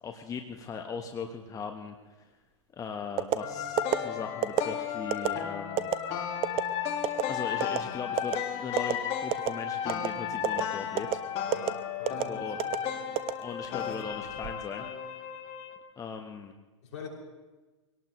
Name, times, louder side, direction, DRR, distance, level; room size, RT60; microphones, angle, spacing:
voice 1, 0.0-2.1 2.7-5.9 7.3-11.2 12.3-12.6 13.4-14.9 16.0-16.5, left 6 dB, 20° left, 5 dB, 1.2 m, -39 dB
sound 1, 3.2-3.4 3.8-4.0 4.4-4.7 5.1-5.3 5.8-6.0 6.4-6.6 7.0-7.2 7.6-7.8 8.2-8.4 8.8-8.9 9.3-9.6 9.9-10.1 10.4-10.6 11.0-11.2 11.5-11.7 12.1-12.2 12.6-12.8 13.2-13.8 14.2-14.5, right 12 dB, 35° right, 0.9 m, -26 dB
sound 2, 3.4-15.8, left 9 dB, 40° left, 2.1 m, -34 dB
voice 2, 11.4-13.2 16.8-17.1, left 5 dB, 65° left, -1 dB, 6.1 m, -45 dB
23.5 x 18.5 x 3.2 m, 1.2 s
hypercardioid pair, 110°, 16 cm